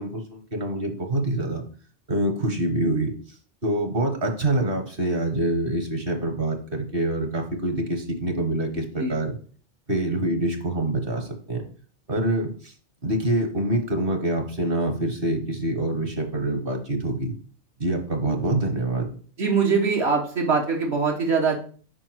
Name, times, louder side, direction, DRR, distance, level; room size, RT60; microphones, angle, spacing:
voice 1, 0.0-1.7 2.1-3.1 3.6-9.4 9.9-11.6 12.1-12.7 13.0-17.3 17.8-19.2, right 1 dB, 55° right, 5 dB, 1.5 m, -25 dB
voice 2, 19.4-21.6, right 4 dB, 70° right, 0 dB, 1.4 m, -22 dB
4.8 x 4.6 x 6.1 m, 0.43 s
omnidirectional pair, 1.2 m